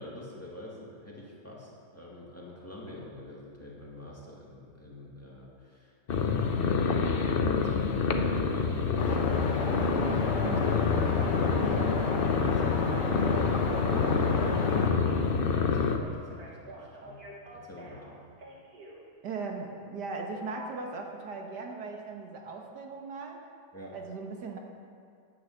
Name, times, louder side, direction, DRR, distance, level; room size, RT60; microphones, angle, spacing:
voice 1, 0.0-9.6 10.0-13.0 15.3-17.2 17.5-18.1 23.7-24.0, left 1 dB, 10° left, -4 dB, 2.2 m, -47 dB
sound 1, 6.1-16.0, left 5 dB, 50° left, 0.7 m, -27 dB
sound 2, 9.0-14.9, left 3 dB, 80° left, 2.0 m, -33 dB
Telephone, 9.6-19.0 20.6-20.7, right 1 dB, 60° right, 2.3 m, -48 dB
voice 2, 19.2-23.4 23.9-24.6, right 4 dB, 80° right, 2 dB, 1.9 m, -38 dB
10.5 x 8.5 x 8.1 m, 2.2 s
omnidirectional pair, 1.8 m